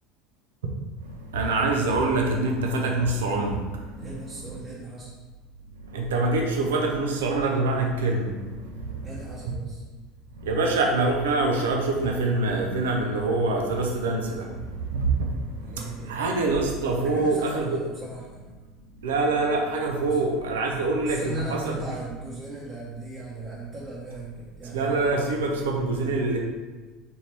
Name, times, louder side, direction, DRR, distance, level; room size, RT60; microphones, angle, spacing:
voice 1, 1.3-3.5 5.9-8.3 10.5-14.4 14.9-15.1 16.1-17.8 19.0-21.8 24.7-26.4, right 2 dB, 90° right, 1 dB, 0.6 m, -24 dB
voice 2, 3.9-5.1 9.0-9.8 15.6-16.2 17.0-18.5 20.1-20.2 21.0-25.0, right 2 dB, 30° right, -6 dB, 1.0 m, -38 dB
4.4 x 2.8 x 3.4 m, 1.2 s
supercardioid pair, 95°, 0 cm